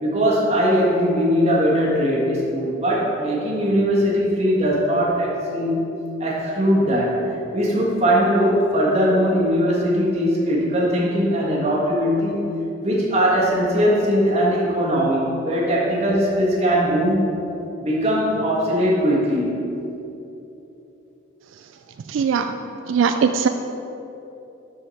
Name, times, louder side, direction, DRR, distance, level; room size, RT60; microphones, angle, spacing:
voice 1, 0.0-5.9 6.2-12.4 12.8-17.2 17.8-19.6, equal, 35° right, -5 dB, 1.6 m, -20 dB
voice 2, 22.1-22.5 22.9-23.5, right 6 dB, 85° right, 7 dB, 0.3 m, -19 dB
7.2 x 6.4 x 4.2 m, 2.9 s
head